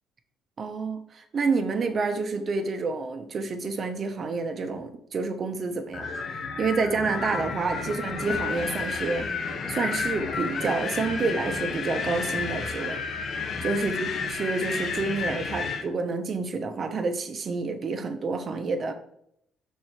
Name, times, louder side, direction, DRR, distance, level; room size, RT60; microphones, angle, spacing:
voice 1, 0.6-6.1 6.6-13.0 13.6-18.9, right 4 dB, 45° right, 6 dB, 1.0 m, -29 dB
Wind, 5.9-15.9, left 5 dB, 55° left, 0.9 m, -31 dB
6.3 x 4.6 x 4.4 m, 0.70 s
cardioid pair, 85°, 0 cm